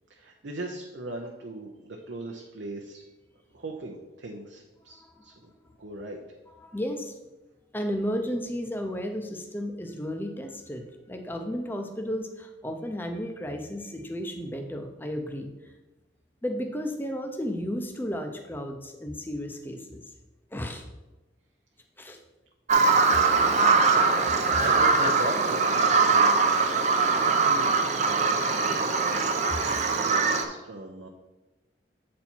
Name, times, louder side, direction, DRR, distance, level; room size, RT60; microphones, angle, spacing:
voice 1, 0.1-3.0 3.5-5.5 5.8-6.2 23.0-23.8 24.6-26.4 26.9-29.0 29.3-31.1, right 1 dB, 70° right, 1 dB, 0.7 m, -39 dB
voice 2, 4.9-5.3 5.5-5.7 6.6-7.2 7.7-15.5 16.4-20.0 20.5-20.8 22.0-22.2, equal, 10° left, 4 dB, 0.6 m, -33 dB
Bird vocalization bird call bird song, 22.7-30.4, right 4 dB, 35° right, 0.6 m, -22 dB
8.3 x 4.2 x 4.4 m, 1.1 s
head